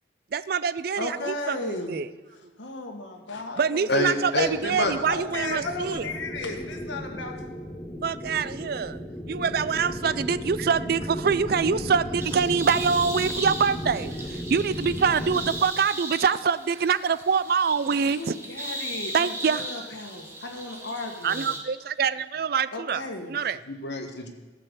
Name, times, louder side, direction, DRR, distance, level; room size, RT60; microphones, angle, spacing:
voice 1, 0.3-2.1 3.6-6.1 8.0-9.0 9.3-18.3 19.1-19.9 21.2-23.6, right 6 dB, 55° right, 16 dB, 0.3 m, -25 dB
voice 2, 1.0-2.1 2.6-4.2 5.1-7.3 18.1-21.5 22.7-23.4, left 2 dB, 90° left, 3 dB, 1.7 m, -35 dB
voice 3, 3.9-4.9 23.7-24.3, left 2 dB, 65° left, 4 dB, 1.4 m, -27 dB
sound 1, 4.4-15.6, equal, 10° left, 0.8 m, -35 dB
sound 2, 12.2-21.6, right 1 dB, 15° right, 1.5 m, -37 dB
13.0 x 6.8 x 6.9 m, 1.2 s
head